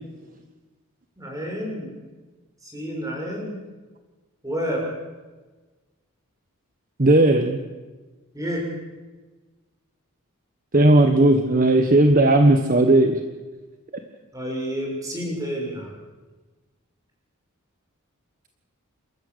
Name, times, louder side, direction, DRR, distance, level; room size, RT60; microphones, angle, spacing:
voice 1, 1.2-1.9 2.6-3.6 4.4-4.9 8.3-8.6 14.3-15.9, equal, 15° right, -1 dB, 6.8 m, -29 dB
voice 2, 7.0-7.6 10.7-13.2, right 2 dB, 40° right, 6 dB, 1.3 m, -16 dB
27.0 x 14.0 x 8.1 m, 1.3 s
head